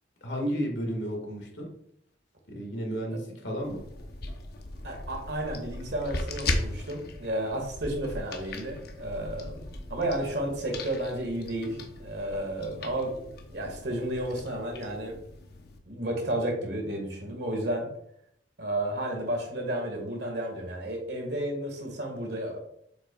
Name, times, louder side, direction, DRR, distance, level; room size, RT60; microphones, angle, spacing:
voice 1, 0.2-1.7 2.5-3.8, equal, 75° left, 1 dB, 1.8 m, -32 dB
sound 1, 3.6-15.8, left 2 dB, 60° left, 0.8 m, -38 dB
voice 2, 4.8-15.2 15.9-17.9 18.6-22.6, right 1 dB, 65° right, 2 dB, 1.7 m, -32 dB
7.5 x 5.5 x 2.3 m, 0.71 s
head